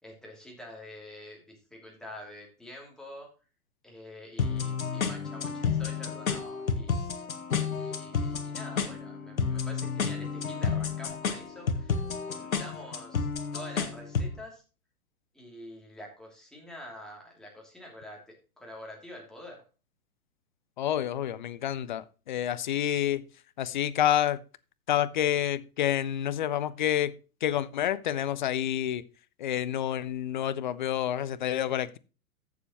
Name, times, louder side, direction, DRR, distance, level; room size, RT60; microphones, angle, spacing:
voice 1, 0.0-3.3 3.8-7.0 7.6-13.3 13.5-14.6 15.3-18.2 18.6-19.6, left 1 dB, ahead, 2.7 m, -47 dB
sound 1, 4.4-14.4, left 6 dB, 65° left, 1.5 m, -31 dB
voice 2, 20.8-23.2 23.6-24.4 24.9-27.1 27.4-29.0 29.4-32.0, left 11 dB, 35° left, 0.5 m, -28 dB
14.5 x 7.1 x 3.0 m
figure-of-eight pair, 115°, 44 cm